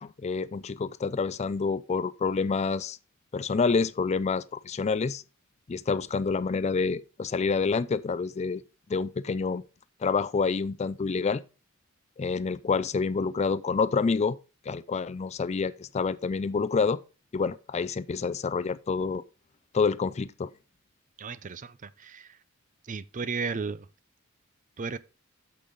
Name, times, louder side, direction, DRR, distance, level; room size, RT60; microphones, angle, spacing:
voice 1, 0.0-3.0 3.3-5.2 5.7-8.6 8.9-9.6 10.0-11.4 12.2-14.4 14.7-17.0 17.3-19.2 19.7-20.5, left 4 dB, 30° left, 0.4 m, -28 dB
voice 2, 21.2-22.4 22.8-23.9 24.8-25.0, right 5 dB, 35° right, 0.5 m, -34 dB
8.6 x 6.9 x 3.9 m
head